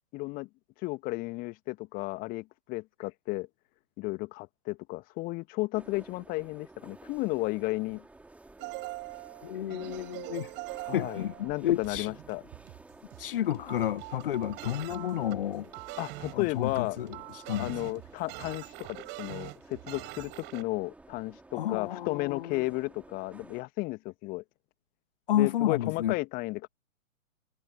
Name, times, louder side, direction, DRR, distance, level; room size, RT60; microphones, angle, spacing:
voice 1, 0.1-0.5 0.8-3.5 4.0-8.0 10.9-12.4 16.0-17.0 17.6-24.4 25.3-26.7, left 22 dB, 20° left, 1.7 m, -33 dB
sound 1, 5.7-23.6, right 2 dB, 5° right, 3.2 m, -53 dB
sound 2, 8.6-20.6, right 25 dB, 25° right, 5.4 m, -43 dB
voice 2, 9.4-10.5 10.9-12.1 13.2-15.7 16.3-17.1 17.3-17.7 21.5-22.6 25.3-26.1, left 12 dB, 40° left, 1.3 m, -31 dB
figure-of-eight pair, 125°, 41 cm